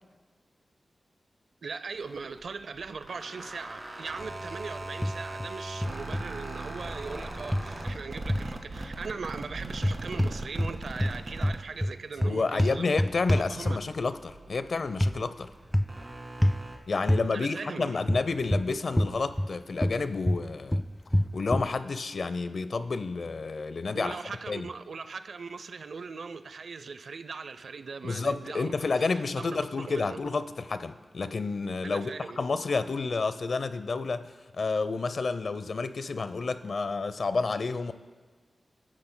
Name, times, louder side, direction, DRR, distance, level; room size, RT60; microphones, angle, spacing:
voice 1, 1.6-12.9 13.5-13.8 17.3-18.0 23.9-28.7 29.1-30.2 31.8-32.4, right 4 dB, 80° right, 0.5 m, -39 dB
sound 1, 1.9-12.6 12.9-16.8, right 2 dB, 40° right, 2.0 m, -40 dB
sound 2, 5.0-5.5 5.8-6.3 7.5-8.5 9.7-10.7 11.0-14.0 15.0-15.2 15.7-16.0 16.4-16.6 17.1-17.3 18.1-19.5 19.8-21.7, equal, 10° left, 0.3 m, -27 dB
voice 2, 12.2-15.5 16.9-20.8 21.3-24.2 24.5-24.7 28.0-32.1 32.4-37.9, left 4 dB, 65° left, 0.6 m, -30 dB
29.5 x 12.5 x 2.2 m
wide cardioid pair, 70°, 0 cm